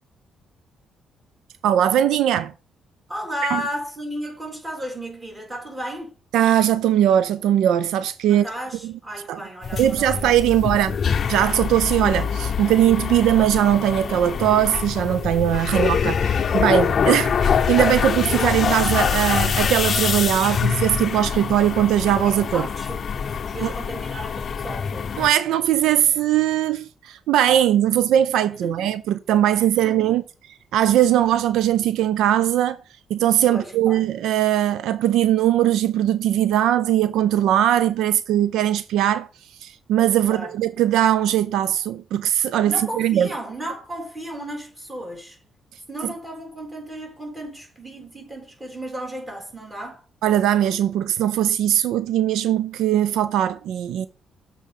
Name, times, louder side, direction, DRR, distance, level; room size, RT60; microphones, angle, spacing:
voice 1, 1.6-2.5 3.5-3.6 6.3-8.5 8.8-8.9 9.3-9.4 9.7-11.0 11.3-22.7 23.6-23.7 25.2-30.2 30.7-32.8 33.1-39.3 39.6-43.3 46.0-46.1 50.2-54.1, right 11 dB, 85° right, 0.4 m, -20 dB
voice 2, 3.1-6.1 8.3-10.4 10.7-10.8 22.5-25.2 28.6-28.7 29.8-30.1 33.5-34.0 40.2-40.6 42.7-45.4 45.9-50.0, equal, 20° right, 3.8 m, -34 dB
sound 1, 9.6-25.3, left 7 dB, 50° left, 0.6 m, -24 dB
7.4 x 4.6 x 5.3 m
cardioid pair, 90°, 0 cm